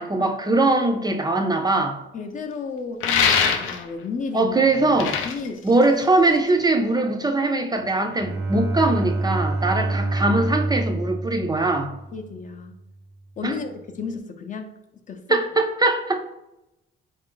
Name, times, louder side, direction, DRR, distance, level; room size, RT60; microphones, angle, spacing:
voice 1, 0.0-2.0 4.3-5.2 5.6-11.9 13.4-13.5 15.3-16.2, right 2 dB, 20° right, 5 dB, 0.4 m, -21 dB
voice 2, 2.1-4.6 5.2-5.6 12.1-12.8 13.4-14.7 15.1-15.4, left 4 dB, 40° left, 6 dB, 0.5 m, -32 dB
sound 1, 3.0-4.0 4.8-6.5, left 6 dB, 90° left, 0.5 m, -23 dB
Bowed string instrument, 8.1-12.6, right 2 dB, 90° right, 0.7 m, -27 dB
3.7 x 2.5 x 3.7 m, 0.93 s
cardioid pair, 90°, 20 cm